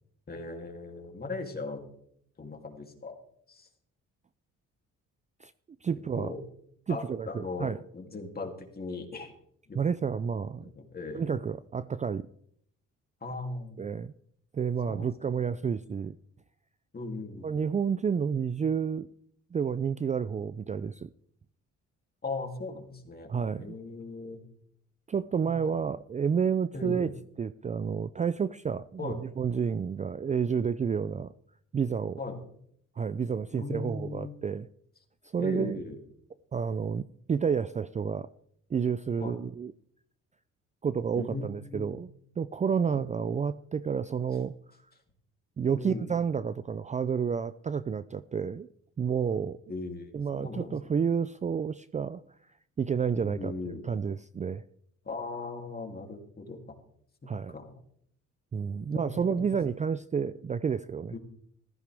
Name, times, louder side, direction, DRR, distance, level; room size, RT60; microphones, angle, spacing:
voice 1, 0.3-1.8 2.4-3.2 3.5-3.7 6.1-6.4 6.9-9.3 9.7-9.8 10.6-11.4 13.2-13.8 14.9-15.1 16.9-17.6 22.2-23.3 23.6-24.4 25.4-25.7 26.7-27.1 29.0-29.2 32.2-32.4 33.5-34.4 35.4-36.0 39.2-39.4 41.1-41.9 42.9-43.2 45.8-46.1 49.7-50.7 53.2-53.8 55.0-56.6 57.2-57.8 58.8-59.6 61.1-61.2, left 3 dB, 30° left, 3 dB, 2.8 m, -38 dB
voice 2, 5.8-6.3 6.9-7.8 9.7-10.7 11.1-12.3 13.8-14.1 14.5-16.1 17.4-19.1 19.5-21.1 23.3-23.7 25.1-27.1 27.4-31.3 31.7-32.2 33.0-34.7 35.3-35.8 36.5-38.3 38.7-39.7 40.8-42.1 42.4-44.5 45.6-48.7 49.0-49.6 50.1-52.2 52.8-54.6 57.3-57.5 58.5-61.2, right 6 dB, 25° right, 15 dB, 0.4 m, -30 dB
15.0 x 14.5 x 3.5 m, 0.67 s
cardioid pair, 90°, 30 cm